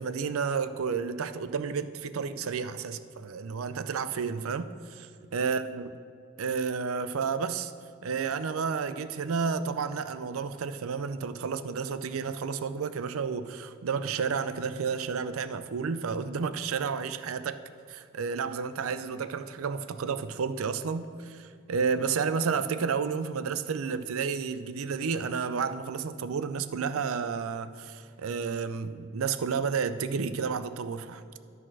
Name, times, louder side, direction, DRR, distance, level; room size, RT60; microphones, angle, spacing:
voice 1, 0.0-5.0 5.3-5.9 6.4-7.7 8.0-17.6 17.9-31.4, right 5 dB, 85° right, 12 dB, 0.5 m, -31 dB
11.5 x 4.2 x 6.0 m, 2.4 s
head